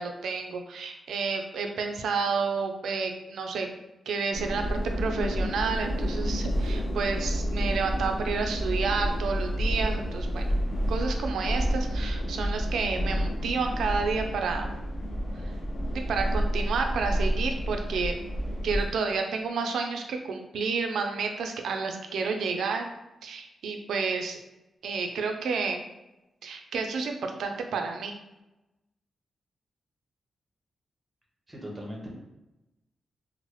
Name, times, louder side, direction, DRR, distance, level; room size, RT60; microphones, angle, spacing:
voice 1, 0.0-3.7 4.1-10.5 10.9-14.7 15.9-18.2 18.6-22.9 23.2-24.4 24.8-25.9 26.4-28.1, right 4 dB, 80° right, 4 dB, 0.3 m, -30 dB
sound 1, 4.3-18.8, equal, 35° left, 0.5 m, -29 dB
voice 2, 31.5-32.1, equal, 15° right, -2 dB, 0.6 m, -39 dB
3.0 x 2.0 x 3.0 m, 0.98 s
wide cardioid pair, 180°, 0 cm